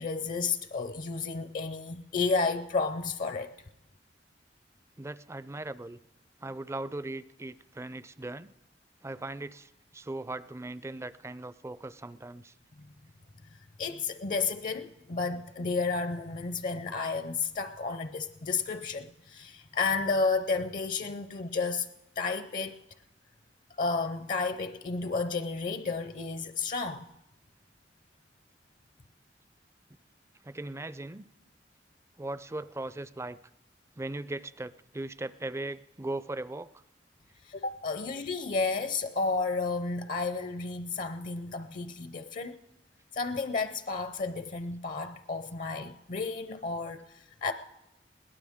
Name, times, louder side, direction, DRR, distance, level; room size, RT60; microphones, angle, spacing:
voice 1, 0.0-3.5 13.5-21.9 22.2-22.8 23.8-27.1 37.4-42.6 43.1-47.5, left 4 dB, 45° left, 0.6 m, -32 dB
voice 2, 5.0-6.0 6.4-8.5 9.0-12.5 30.4-31.3 32.2-33.4 34.0-36.7, right 2 dB, 15° right, 0.4 m, -38 dB
21.5 x 17.5 x 3.6 m
head